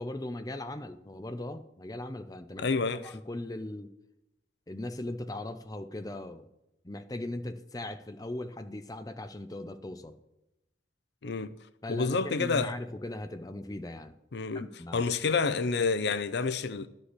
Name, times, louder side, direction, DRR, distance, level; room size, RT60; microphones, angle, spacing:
voice 1, 0.0-2.6 2.9-3.9 4.7-6.5 6.8-10.2 11.8-14.1 14.5-15.1, left 1 dB, 20° left, 0.6 m, -38 dB
voice 2, 2.6-3.2 11.2-11.6 11.9-12.7 14.3-14.7 14.9-16.9, left 4 dB, 60° left, 0.5 m, -29 dB
12.0 x 5.3 x 8.1 m
head